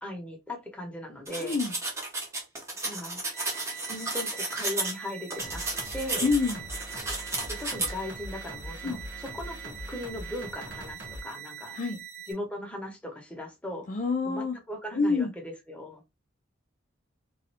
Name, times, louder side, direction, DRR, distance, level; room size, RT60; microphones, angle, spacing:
voice 1, 0.0-1.6 2.8-3.2 3.9-5.6 5.9-6.3 7.5-11.8 12.3-13.9 14.2-16.0, left 1 dB, 5° left, 1.0 m, -38 dB
sound 1, 1.3-4.9 5.3-7.9, right 2 dB, 15° right, 0.8 m, -33 dB
voice 2, 1.4-1.7 6.2-6.6 8.8-9.0 11.7-12.0 13.9-14.6 14.9-15.3, left 4 dB, 40° left, 0.5 m, -27 dB
sound 2, 3.3-12.3, right 9 dB, 35° right, 1.0 m, -44 dB
sound 3, 5.4-11.2, equal, 65° right, 1.2 m, -42 dB
3.1 x 2.6 x 2.7 m
head